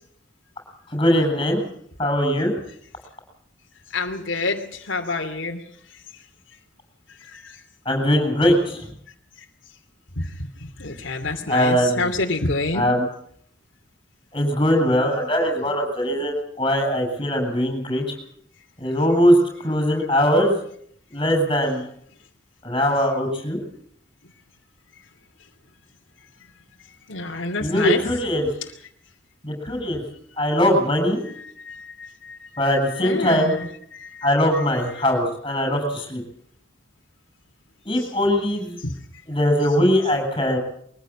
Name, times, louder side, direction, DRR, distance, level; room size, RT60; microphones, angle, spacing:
voice 1, 0.9-1.6 2.0-2.5 7.8-8.8 11.5-12.1 12.7-13.1 14.3-18.1 18.8-19.4 19.6-20.6 21.1-21.9 22.6-23.6 27.6-28.5 29.4-30.0 30.4-31.3 32.6-33.6 34.2-36.2 37.8-38.8 39.3-40.6, equal, 25° left, 3 dB, 7.7 m, -21 dB
voice 2, 3.9-5.6 7.3-7.6 10.2-10.3 10.6-12.9 27.1-28.0 31.6-32.5 33.0-34.3 38.0-38.1 38.8-39.0, left 3 dB, 80° left, 2 dB, 2.8 m, -28 dB
23.0 x 15.5 x 8.6 m, 0.65 s
head